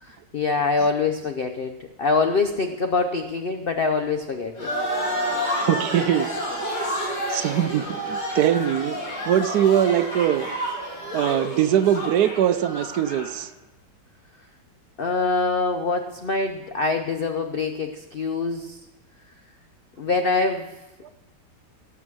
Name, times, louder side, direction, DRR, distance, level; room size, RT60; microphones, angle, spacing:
voice 1, 0.0-4.7 15.0-18.8 20.0-20.7, left 4 dB, 85° left, 6 dB, 0.5 m, -24 dB
sound 1, 4.6-13.3, equal, 70° left, 3.4 m, -29 dB
voice 2, 5.5-6.3 7.3-9.0 9.3-10.5 11.1-13.5 21.0-21.1, right 10 dB, 70° right, 12 dB, 1.1 m, -22 dB
18.0 x 6.1 x 6.0 m, 1.0 s
omnidirectional pair, 1.9 m